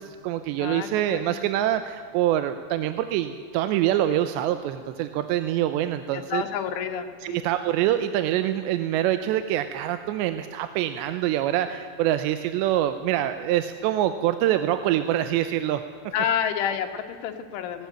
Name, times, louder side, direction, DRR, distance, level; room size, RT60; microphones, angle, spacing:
voice 1, 0.0-6.4 7.2-15.8, right 12 dB, 80° right, 10 dB, 2.9 m, -25 dB
voice 2, 0.6-1.4 6.1-7.4 16.1-17.9, left 8 dB, 90° left, 7 dB, 4.0 m, -29 dB
19.0 x 18.5 x 8.8 m, 2.1 s
omnidirectional pair, 5.3 m